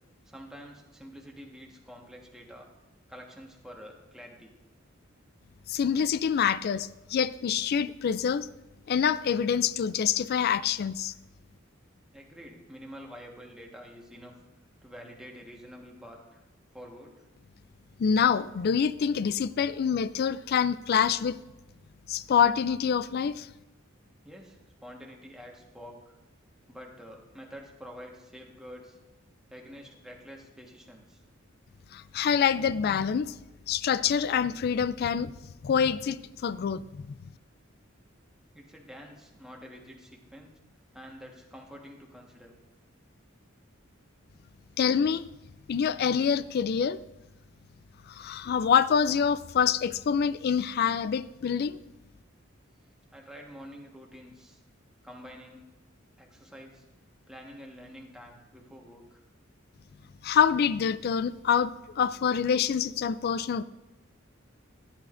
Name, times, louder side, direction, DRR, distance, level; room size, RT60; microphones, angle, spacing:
voice 1, 0.2-2.7 3.1-4.5 12.1-14.3 14.8-16.4 16.7-17.3 24.2-26.2 26.7-29.0 29.5-31.2 38.5-40.5 40.9-42.5 53.1-54.6 55.0-55.7 56.2-56.8 57.3-59.2, equal, 5° right, -1 dB, 1.3 m, -47 dB
voice 2, 5.7-8.5 8.9-11.1 18.0-21.4 22.1-23.5 31.9-33.3 33.7-35.3 35.6-37.1 44.8-45.2 45.7-47.0 48.1-51.8 60.2-63.6, left 7 dB, 50° left, 17 dB, 0.3 m, -26 dB
14.0 x 10.0 x 2.5 m, 1.0 s
head